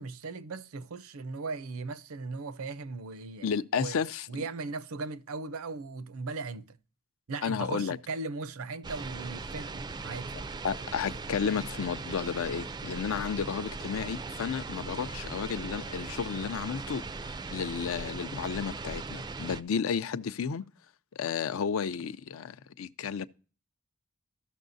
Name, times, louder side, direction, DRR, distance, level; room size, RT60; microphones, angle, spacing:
voice 1, 0.0-3.5 3.8-4.0 4.3-6.8 7.3-10.5, right 3 dB, 85° right, 0.6 m, -38 dB
voice 2, 3.4-4.3 7.4-8.0 10.6-20.6 21.2-23.3, left 6 dB, 70° left, 0.4 m, -32 dB
sound 1, 8.8-19.6, right 3 dB, 20° right, 0.3 m, -39 dB
14.0 x 6.2 x 2.6 m
head